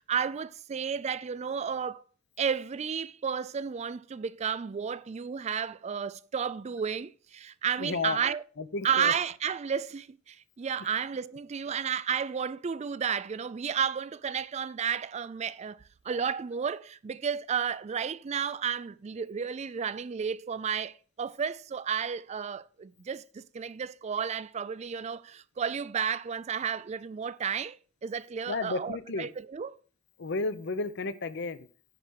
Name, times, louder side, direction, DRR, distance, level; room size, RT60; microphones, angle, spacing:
voice 1, 0.0-2.0 2.4-8.4 8.8-29.8, right 7 dB, 35° right, 0.4 m, -32 dB
voice 2, 7.8-8.2 8.6-9.1 10.8-10.9 28.5-29.3 30.2-31.7, left 3 dB, 60° left, 0.8 m, -33 dB
9.9 x 4.9 x 6.3 m
head